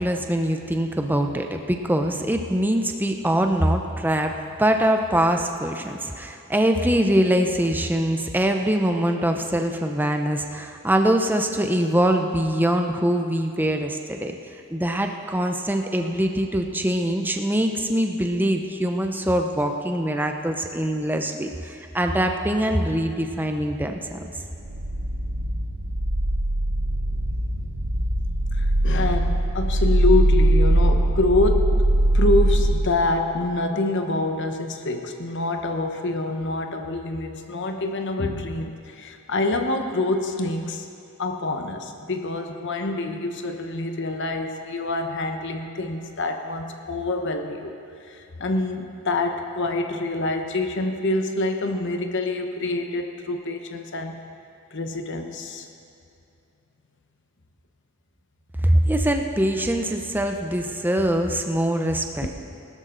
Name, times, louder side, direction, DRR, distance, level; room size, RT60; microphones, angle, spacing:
voice 1, 0.0-4.3 4.6-14.4 14.7-24.2 58.6-62.3, right 1 dB, 10° right, 4 dB, 0.7 m, -23 dB
sound 1, 24.5-32.9, right 1 dB, 80° right, 1.3 m, -21 dB
voice 2, 28.5-31.8 32.1-40.9 41.2-47.7 48.0-54.2 54.7-55.7 62.2-62.3, left 2 dB, 55° left, 5 dB, 1.0 m, -26 dB
19.0 x 12.5 x 3.9 m, 2.6 s
head